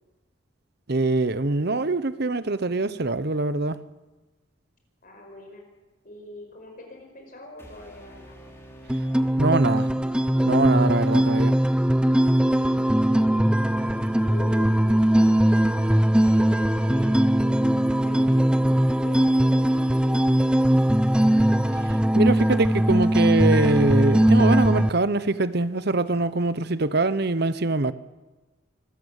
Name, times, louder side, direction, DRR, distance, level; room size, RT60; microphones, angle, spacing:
voice 1, 0.9-3.8 9.4-9.9 10.4-11.5 22.1-27.9, right 2 dB, 50° right, 0.9 m, -23 dB
voice 2, 5.0-5.7 6.0-8.5 12.7-13.4 14.2-15.5 16.2-17.2 18.0-20.2, left 2 dB, 40° left, 5.0 m, -43 dB
sound 1, 7.6-10.6, equal, 10° left, 3.4 m, -48 dB
sound 2, 8.9-24.9, right 1 dB, 5° right, 0.6 m, -20 dB
25.5 x 14.0 x 8.2 m
head